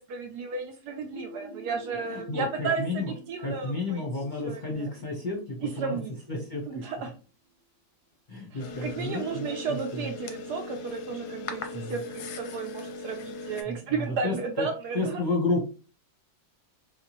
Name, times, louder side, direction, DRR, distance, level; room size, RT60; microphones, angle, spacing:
voice 1, 0.0-4.0 4.4-4.9 5.8-6.1 6.7-7.1 8.5-15.2, right 5 dB, 70° right, 4 dB, 1.0 m, -33 dB
sound 1, 1.1-6.7, right 3 dB, 15° right, 1.0 m, -47 dB
voice 2, 2.1-3.1 3.4-6.0 6.3-6.8 8.3-10.1 11.7-12.0 13.6-14.7 14.9-15.6, left 2 dB, 35° left, -3 dB, 0.8 m, -32 dB
sound 2, 8.6-13.6, left 3 dB, 70° left, 1.0 m, -39 dB
3.6 x 2.4 x 2.9 m, 0.35 s
omnidirectional pair, 2.0 m